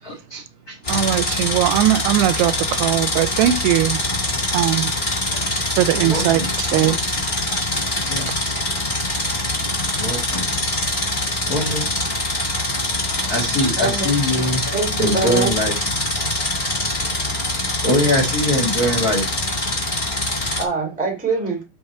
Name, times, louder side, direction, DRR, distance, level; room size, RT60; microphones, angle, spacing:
voice 1, 0.0-1.1 5.3-5.5 5.9-6.5 6.8-6.9 8.1-8.3 9.9-10.4 11.5-11.9 13.3-15.7 17.0-17.1 17.8-19.8, left 1 dB, 75° left, 0.8 m, -23 dB
sound 1, 0.8-20.6, left 1 dB, 45° left, 0.6 m, -24 dB
voice 2, 0.9-4.0 4.5-4.9 5.8-6.4 6.7-7.0, right 14 dB, 90° right, 2.7 m, -19 dB
voice 3, 13.8-14.1 14.7-15.5 20.6-21.6, right 4 dB, 5° right, 1.0 m, -23 dB
7.2 x 5.7 x 4.4 m
omnidirectional pair, 4.6 m